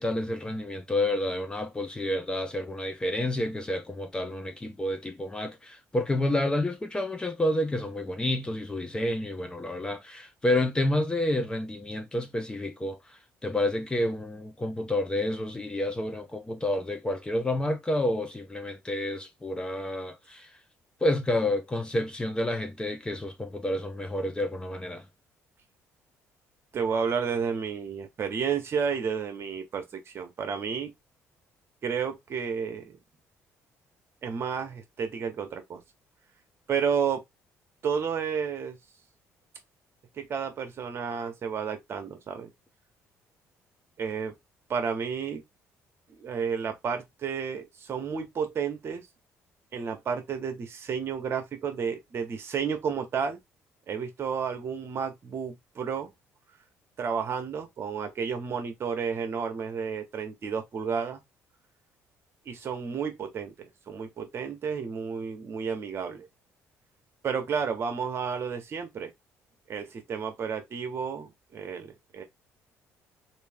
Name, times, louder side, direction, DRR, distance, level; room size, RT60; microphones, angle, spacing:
voice 1, 0.0-13.0 13.4-20.5 21.0-25.0, left 1 dB, 15° left, 0.7 m, -29 dB
voice 2, 26.7-30.9 31.8-33.0 34.2-35.8 36.7-37.2 37.8-38.8 40.2-42.5 44.0-44.3 44.7-45.4 46.1-49.1 49.7-53.4 53.9-56.1 57.0-61.2 62.5-66.3 67.2-69.1 69.7-72.2, right 6 dB, 45° right, 1.1 m, -31 dB
3.1 x 2.7 x 3.5 m
cardioid pair, 100°, 6 cm